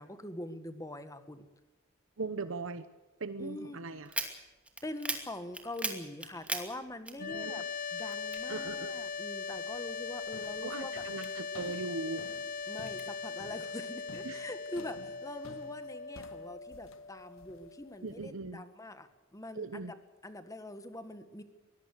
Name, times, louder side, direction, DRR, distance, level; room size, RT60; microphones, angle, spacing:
voice 1, 0.0-1.5 3.4-3.8 4.8-7.6 7.9-11.0 12.7-19.9 20.2-21.4, left 1 dB, 15° left, 10 dB, 1.7 m, -44 dB
voice 2, 2.2-2.8 3.2-4.3 7.2-7.6 8.5-9.0 10.6-12.2 14.2-14.4 18.0-18.6 19.5-19.9, right 3 dB, 70° right, 12 dB, 0.9 m, -39 dB
sound 1, 4.0-7.7 8.0-9.3 9.7-11.8 12.3-13.0, right 2 dB, 5° right, 2.5 m, -39 dB
sound 2, 7.1-18.2, left 5 dB, 40° left, 0.6 m, -40 dB
sound 3, 9.5-9.8 10.3-18.3, left 2 dB, 70° left, 1.4 m, -54 dB
23.5 x 18.5 x 6.7 m, 1.2 s
head